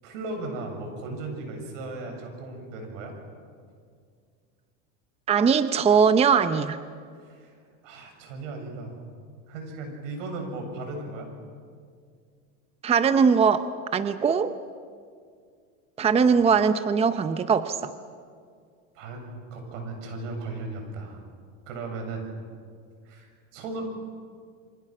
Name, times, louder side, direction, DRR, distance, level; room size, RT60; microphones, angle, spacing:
voice 1, 0.0-3.1 7.2-7.5 7.8-8.9 9.5-11.3 18.9-21.2 21.7-22.3 23.0-23.8, right 2 dB, 80° right, 3 dB, 7.4 m, -36 dB
voice 2, 5.3-6.8 12.8-14.6 16.0-17.9, right 6 dB, 15° right, 11 dB, 0.7 m, -21 dB
28.0 x 25.5 x 6.1 m, 2.1 s
supercardioid pair, 130°, 37 cm